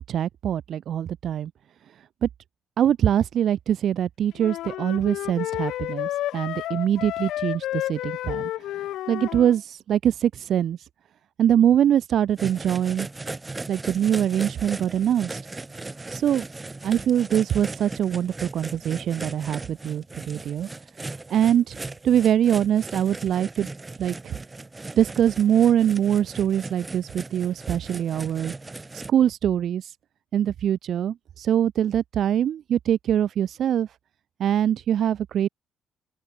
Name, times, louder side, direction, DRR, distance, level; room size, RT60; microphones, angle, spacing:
voice 1, 0.0-1.5 2.0-2.3 2.8-10.9 11.4-13.1 13.7-15.4 16.1-16.4 16.8-20.7 21.0-21.8 22.0-23.7 24.0-24.3 24.9-28.5 28.9-30.0 30.3-33.9 34.4-35.5, right 10 dB, 65° right, 0.4 m, -23 dB
sound 1, 4.4-9.6, left 14 dB, 85° left, 0.5 m, -31 dB
sound 2, 12.4-29.1, right 3 dB, 20° right, 0.7 m, -38 dB
open air
cardioid pair, 90°, 0 cm